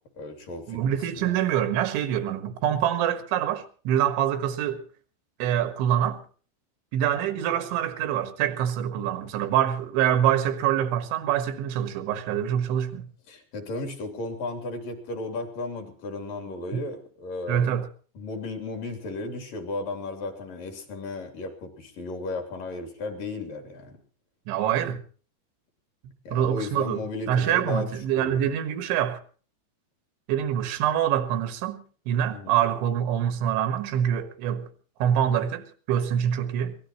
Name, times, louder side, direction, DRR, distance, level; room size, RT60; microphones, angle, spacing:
voice 1, 0.1-0.8 1.2-1.4 13.3-17.8 18.1-24.0 26.2-28.4 32.3-32.6, left 2 dB, 50° left, 4.3 m, -35 dB
voice 2, 0.7-4.8 5.4-6.2 6.9-13.1 16.7-16.8 17.5-17.9 24.5-25.0 26.3-27.0 27.3-29.2 30.3-34.7 35.0-36.8, right 10 dB, 85° right, 3.9 m, -25 dB
23.0 x 18.0 x 3.1 m
omnidirectional pair, 5.2 m